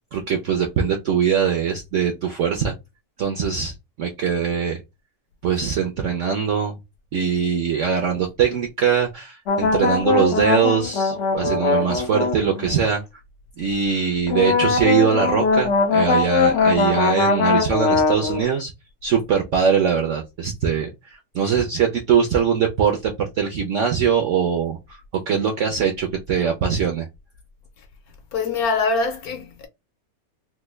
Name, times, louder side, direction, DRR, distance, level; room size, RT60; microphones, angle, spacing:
voice 1, 0.1-2.7 3.2-4.8 5.4-6.8 7.1-13.0 13.6-18.7 19.0-25.0 25.3-27.1, right 7 dB, 70° right, 0.7 m, -22 dB
sound 1, 9.5-12.8 14.3-18.5, left 4 dB, 85° left, 0.6 m, -21 dB
voice 2, 28.3-29.7, left 4 dB, 70° left, 1.0 m, -23 dB
3.3 x 2.2 x 3.1 m
omnidirectional pair, 1.9 m